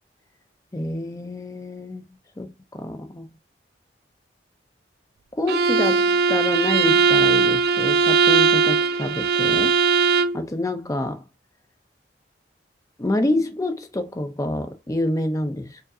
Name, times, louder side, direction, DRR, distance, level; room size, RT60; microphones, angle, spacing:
voice 1, 0.7-2.0 2.4-3.3 5.3-9.8 10.3-11.2 13.0-15.8, left 1 dB, 20° left, 0.5 m, -27 dB
Bowed string instrument, 5.5-10.4, right 5 dB, 60° right, 0.3 m, -19 dB
4.7 x 2.6 x 2.6 m
head